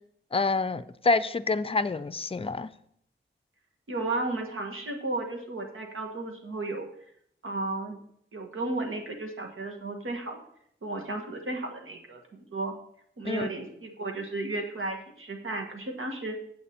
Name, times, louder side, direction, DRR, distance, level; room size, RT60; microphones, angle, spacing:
voice 1, 0.3-2.7 13.2-13.5, left 3 dB, 25° left, 14 dB, 0.5 m, -27 dB
voice 2, 3.9-6.9 7.4-8.0 8.3-10.4 10.8-12.7 13.2-16.4, right 2 dB, 75° right, 3 dB, 1.5 m, -34 dB
8.2 x 7.9 x 4.3 m, 0.69 s
cardioid pair, 50°, 21 cm